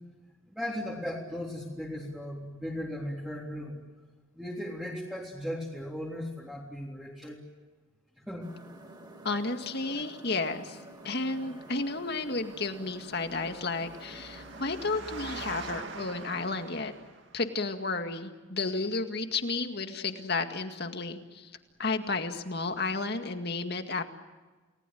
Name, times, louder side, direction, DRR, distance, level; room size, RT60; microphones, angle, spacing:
voice 1, 0.5-3.8 4.3-7.4 8.3-8.5 9.9-10.0, equal, 5° right, -4 dB, 3.5 m, -37 dB
sound 1, 8.4-15.0, right 1 dB, 20° right, 4.4 m, -49 dB
voice 2, 9.2-10.8 11.0-16.9 17.3-21.5 21.8-24.0, left 3 dB, 55° left, 7 dB, 2.0 m, -32 dB
Engine, 11.8-17.5, right 3 dB, 60° right, 2.4 m, -44 dB
30.0 x 19.5 x 9.3 m, 1.3 s
head